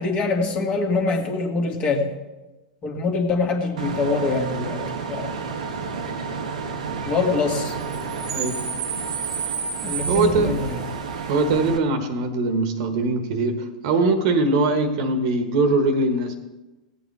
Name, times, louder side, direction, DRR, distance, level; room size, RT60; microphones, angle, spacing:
voice 1, 0.0-2.1 2.8-4.8 5.1-5.4 7.0-7.7 9.8-10.8, left 3 dB, 30° left, 2 dB, 1.9 m, -24 dB
Bus / Idling / Screech, 3.8-11.8, right 5 dB, 75° right, 1.1 m, -29 dB
voice 2, 10.1-10.7 11.3-16.4, right 3 dB, 55° right, 8 dB, 1.3 m, -21 dB
16.5 x 8.5 x 3.4 m, 1.1 s
hypercardioid pair, 100°, 4 cm